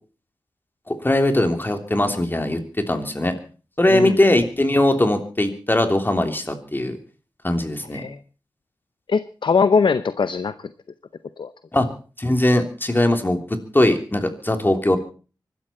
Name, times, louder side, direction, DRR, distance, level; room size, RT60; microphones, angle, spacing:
voice 1, 0.9-3.4 3.8-7.0 7.4-8.0 11.7-11.9 12.2-15.0, left 1 dB, 25° left, 6 dB, 3.2 m, -20 dB
voice 2, 9.1-10.5 11.4-11.5, left 5 dB, 75° left, 13 dB, 0.7 m, -20 dB
24.5 x 12.5 x 4.4 m, 0.37 s
wide cardioid pair, 65°, 8 cm